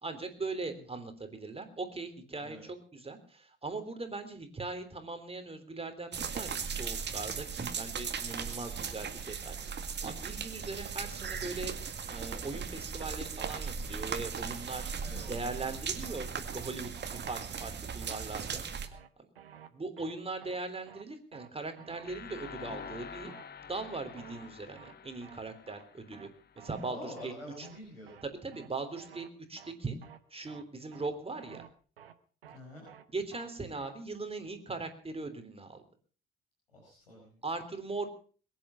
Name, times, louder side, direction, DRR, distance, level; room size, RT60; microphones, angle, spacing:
voice 1, 0.0-9.6 10.0-11.7 12.1-14.9 15.2-18.6 19.7-23.3 23.7-26.3 26.6-27.7 28.4-30.0 30.3-31.6 33.1-35.8 37.4-38.1, right 3 dB, 20° right, 8 dB, 3.5 m, -40 dB
sound 1, 6.1-18.9, right 6 dB, 35° right, 2.0 m, -38 dB
sound 2, 14.7-14.9 15.2-15.3 15.6-15.8 16.1-16.2 16.5-16.7 17.0-17.3 17.6-17.7 18.0-18.2 18.5-18.6 18.9-19.1 19.4-19.7 20.0-20.1 20.4-20.6 20.9-21.0 21.3-21.5 21.8-22.1 22.4-22.5 22.8-23.0 23.3-23.4 23.7-23.9 24.2-24.5 24.8-24.9 25.2-25.4 25.7-25.8 26.1-26.3 26.6-26.9 27.2-27.3 27.6-27.8 28.1-28.2 28.5-28.7 29.0-29.3 29.6-29.7 30.0-30.2 30.5-30.6 30.9-31.1 31.4-31.7 32.0-32.1 32.4-32.6 32.9-33.0 33.3-33.5 33.8-33.9, right 9 dB, 80° right, 0.9 m, -52 dB
sound 3, 22.0-26.9, left 7 dB, 35° left, 1.2 m, -48 dB
voice 2, 26.9-28.1 32.5-32.8 36.7-37.4, left 1 dB, 80° left, -3 dB, 5.1 m, -46 dB
22.0 x 10.5 x 5.7 m, 0.42 s
figure-of-eight pair, 50°, 29 cm